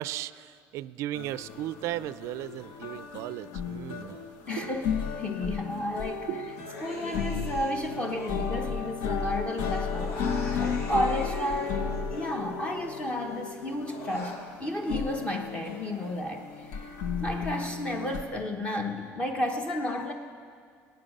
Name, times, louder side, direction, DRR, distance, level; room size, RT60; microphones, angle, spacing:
voice 1, 0.0-4.2 4.6-4.8 6.3-6.8, right 15 dB, 65° right, 17 dB, 0.4 m, -36 dB
sound 1, 1.1-18.2, left 6 dB, 80° left, 1.1 m, -34 dB
voice 2, 4.5-6.3 6.8-10.2 10.6-16.9 17.2-20.1, left 1 dB, 20° left, 3 dB, 1.0 m, -32 dB
Human voice, 6.6-9.2 9.5-13.0 13.3-14.4, left 2 dB, 60° left, 2.4 m, -44 dB
18.0 x 9.2 x 6.5 m, 2.1 s
cardioid pair, 145°, 5 cm